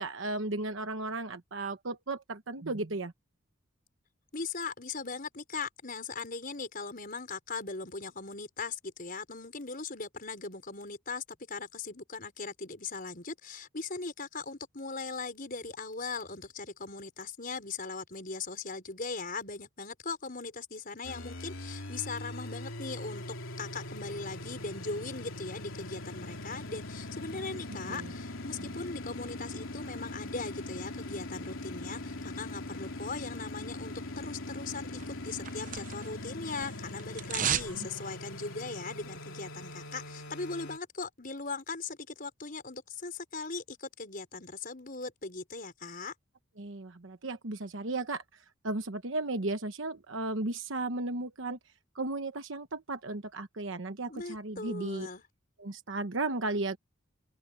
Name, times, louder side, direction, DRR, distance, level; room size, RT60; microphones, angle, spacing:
voice 1, 0.0-3.1 27.5-27.6 27.9-28.1 28.6-28.7 37.4-37.9 46.6-51.6 51.9-55.1 55.6-56.8, right 2 dB, 65° right, 1.1 m, -35 dB
voice 2, 4.3-23.2 23.6-46.1 54.1-55.2, left 4 dB, 45° left, 5.0 m, -39 dB
sound 1, 21.0-40.8, left 1 dB, 75° left, 3.3 m, -41 dB
sound 2, 35.0-36.2 36.5-37.8 38.1-38.2, right 9 dB, 40° right, 0.8 m, -33 dB
open air
head